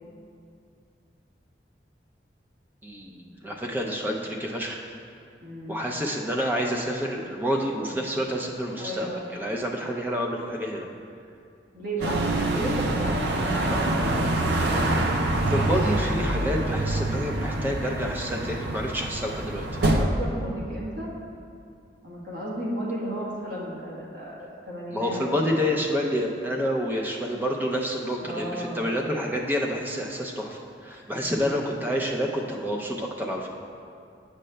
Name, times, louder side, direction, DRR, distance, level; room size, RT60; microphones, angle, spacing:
voice 1, 2.8-4.8 5.7-10.9 15.1-19.7 24.9-33.5, equal, 10° right, 0 dB, 0.4 m, -28 dB
voice 2, 5.4-5.8 7.9-8.0 8.8-9.3 11.7-14.3 19.7-21.1 22.0-25.6 28.2-28.9 31.1-31.6, right 1 dB, 50° right, -6 dB, 1.3 m, -34 dB
sound 1, 12.0-20.1, right 1 dB, 70° right, 0.5 m, -26 dB
8.6 x 6.4 x 2.2 m, 2.4 s
head